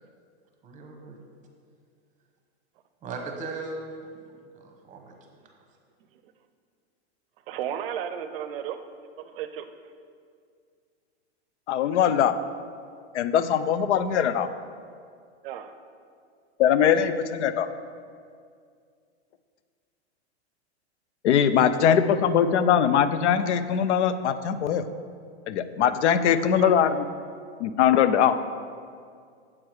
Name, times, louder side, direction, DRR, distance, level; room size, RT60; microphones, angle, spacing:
voice 1, 0.6-1.2 3.0-3.9 4.5-5.1, right 3 dB, 20° right, 3 dB, 0.9 m, -37 dB
voice 2, 7.5-8.8 9.2-9.7 15.4-15.7 26.6-26.8, right 10 dB, 55° right, 10 dB, 0.5 m, -33 dB
voice 3, 11.7-12.3 13.1-14.5 16.6-17.7 21.2-24.8 25.5-26.9 27.6-28.4, left 8 dB, 85° left, 12 dB, 0.5 m, -21 dB
7.3 x 4.6 x 4.7 m, 2.2 s
hypercardioid pair, 135°, 33 cm